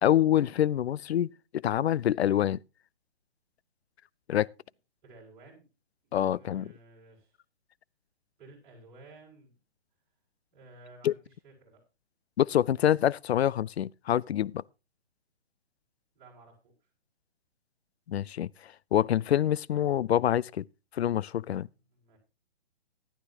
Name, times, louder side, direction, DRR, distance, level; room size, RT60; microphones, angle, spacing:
voice 1, 0.0-2.6 4.3-4.5 6.1-6.7 11.0-11.1 12.4-14.6 18.1-20.6 20.9-21.7, left 11 dB, 85° left, 0.5 m, -26 dB
voice 2, 5.0-5.7 6.0-7.3 8.4-9.6 10.5-11.8 16.1-16.5 21.9-22.2, right 2 dB, 20° right, 5.9 m, -54 dB
13.5 x 12.0 x 2.8 m
hypercardioid pair, 170°, 31 cm